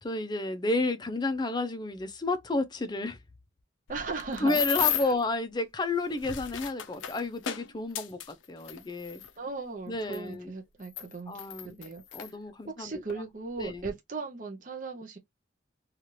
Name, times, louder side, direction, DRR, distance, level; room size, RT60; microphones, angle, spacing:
voice 1, 0.0-3.2 4.4-9.2 9.9-10.5 11.3-11.8 12.1-13.0 13.6-13.9, left 2 dB, 20° left, 0.4 m, -31 dB
sound 1, 3.9-5.2 6.0-9.3 10.1-10.2 10.8-12.3 13.1-13.2 13.6-13.9, left 11 dB, 85° left, 0.5 m, -34 dB
voice 2, 3.9-5.1 9.4-12.0 12.7-15.2, right 4 dB, 45° right, 0.6 m, -38 dB
2.8 x 2.4 x 2.9 m
head